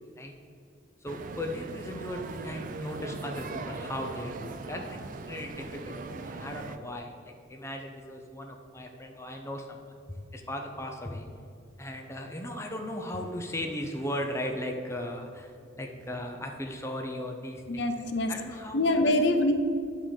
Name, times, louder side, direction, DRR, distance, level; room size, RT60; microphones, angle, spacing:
voice 1, 1.0-11.3 11.8-18.8, left 1 dB, 15° left, 2 dB, 0.6 m, -37 dB
sound 1, 1.1-6.8, right 3 dB, 45° right, 0.4 m, -40 dB
voice 2, 17.7-18.3 18.7-19.6, left 1 dB, 60° left, 7 dB, 0.7 m, -24 dB
9.4 x 3.8 x 6.4 m, 2.4 s
head